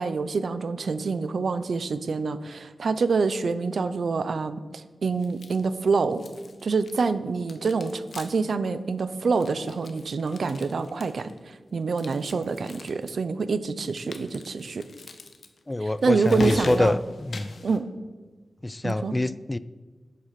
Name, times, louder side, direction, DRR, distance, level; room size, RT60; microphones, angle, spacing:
voice 1, 0.0-6.2 6.6-14.9 15.8-17.0 17.6-17.9 18.8-19.2, right 4 dB, 65° right, 13 dB, 0.7 m, -26 dB
sound 1, 5.2-5.8 6.1-7.1 7.4-8.5 8.8-8.9 9.2-11.4 11.9-13.1 13.9-17.8, left 3 dB, 60° left, 1.2 m, -41 dB
voice 2, 15.7-17.5 18.6-19.6, left 1 dB, 15° left, 17 dB, 0.3 m, -25 dB
12.5 x 8.2 x 5.9 m, 1.4 s
wide cardioid pair, 145°, 0 cm